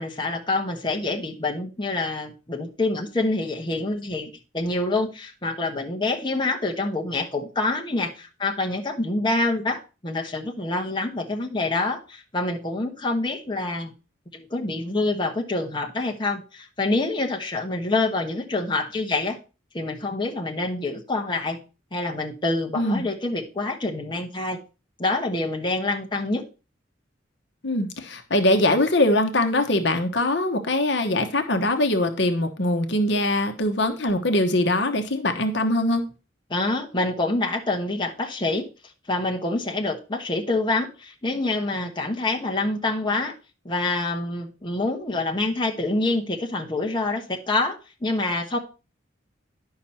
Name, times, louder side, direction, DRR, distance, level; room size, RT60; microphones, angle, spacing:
voice 1, 0.0-13.9 14.3-19.4 19.7-21.6 21.9-24.6 25.0-26.4 36.5-38.7 39.1-43.3 43.6-48.6, left 2 dB, 25° left, 1 dB, 1.2 m, -26 dB
voice 2, 27.6-36.1, left 1 dB, 60° left, 6 dB, 1.1 m, -22 dB
10.5 x 5.8 x 4.3 m, 0.32 s
head